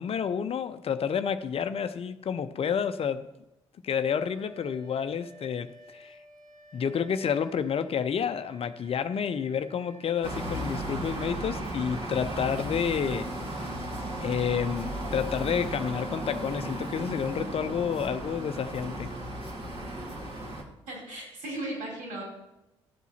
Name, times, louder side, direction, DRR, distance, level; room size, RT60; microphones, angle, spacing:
voice 1, 0.0-3.3 3.8-6.2 6.7-13.7 14.2-19.1, left 7 dB, 40° left, 11 dB, 0.6 m, -30 dB
Wind instrument woodwind instrument, 3.9-10.4, left 1 dB, 85° right, 4.2 m, -54 dB
sound 1, 10.2-20.6, right 1 dB, 40° right, 2.4 m, -35 dB
voice 2, 20.9-22.2, right 1 dB, 65° right, -2 dB, 5.1 m, -36 dB
13.5 x 8.2 x 4.3 m, 0.93 s
figure-of-eight pair, 45°, 14 cm